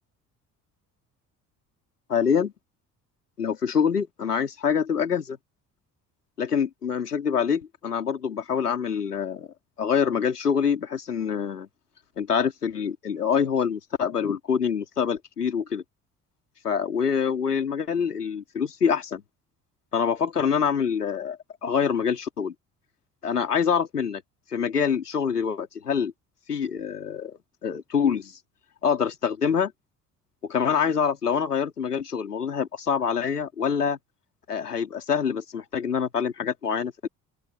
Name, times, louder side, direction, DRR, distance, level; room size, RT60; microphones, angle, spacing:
voice 1, 2.1-2.5 3.4-5.4 6.4-11.7 12.2-15.8 16.6-19.2 19.9-22.5 23.2-24.2 24.5-26.1 26.5-28.4 28.8-29.7 30.4-34.0 34.5-37.1, left 7 dB, 85° left, 4.1 m, -25 dB
open air
figure-of-eight pair, 50°, 45 cm